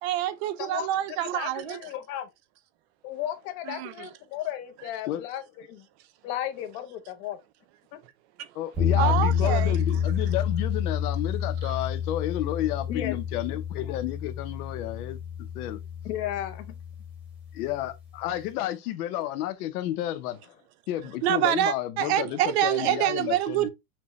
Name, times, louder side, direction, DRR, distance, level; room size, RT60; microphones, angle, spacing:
voice 1, 0.0-1.8 3.7-4.1 8.4-8.5 9.0-9.8 11.6-11.8 21.2-23.7, right 12 dB, 50° right, 0.5 m, -26 dB
voice 2, 1.2-2.3 3.0-5.9 6.2-7.4 7.9-8.0 12.9-13.2 16.0-16.7, left 11 dB, 40° left, 0.7 m, -34 dB
voice 3, 8.5-15.8 17.5-20.6 20.9-23.7, left 13 dB, 85° left, 0.8 m, -31 dB
sound 1, 8.8-17.7, left 8 dB, 5° right, 0.9 m, -29 dB
6.0 x 2.2 x 3.0 m
supercardioid pair, 175°, 44 cm